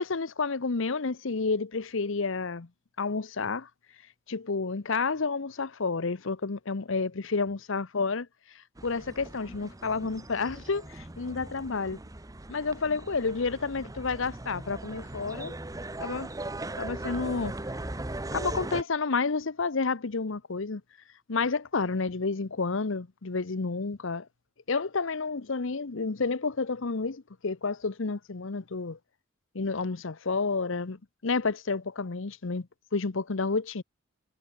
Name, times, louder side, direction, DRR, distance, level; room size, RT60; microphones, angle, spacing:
voice 1, 0.0-2.7 3.0-3.7 4.3-8.3 8.5-12.0 12.5-15.5 16.0-16.3 16.8-17.5 18.3-20.8 21.3-24.3 24.7-29.0 29.5-33.8, left 4 dB, 65° left, 0.8 m, -30 dB
sound 1, 8.8-18.8, right 2 dB, 15° right, 0.8 m, -39 dB
head